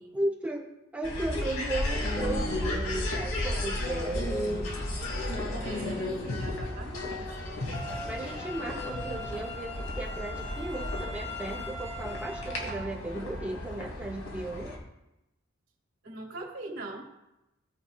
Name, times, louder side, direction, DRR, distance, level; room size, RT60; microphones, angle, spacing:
voice 1, 0.1-4.7 8.0-14.7, right 1 dB, 5° right, -3 dB, 1.7 m, -35 dB
sound 1, 1.0-14.8, left 1 dB, 80° left, 2.7 m, -34 dB
voice 2, 5.6-7.4 16.0-17.1, right 2 dB, 55° right, -3 dB, 3.1 m, -42 dB
sound 2, 7.7-12.7, left 1 dB, 10° left, 2.7 m, -41 dB
18.5 x 8.6 x 2.4 m, 0.91 s
head